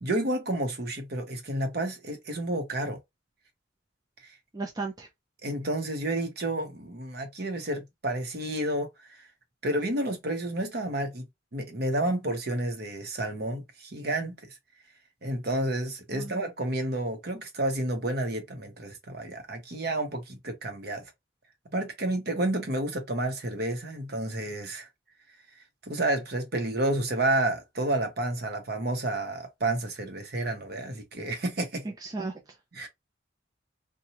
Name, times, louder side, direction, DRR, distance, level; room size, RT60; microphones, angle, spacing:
voice 1, 0.0-3.0 5.4-8.9 9.6-11.2 11.5-14.3 15.2-21.0 21.7-24.9 25.9-31.8 32.7-32.9, right 1 dB, 55° right, 0.9 m, -30 dB
voice 2, 4.5-5.1 16.1-16.4 32.0-32.3, right 3 dB, 20° right, 0.5 m, -34 dB
2.9 x 2.3 x 2.7 m
head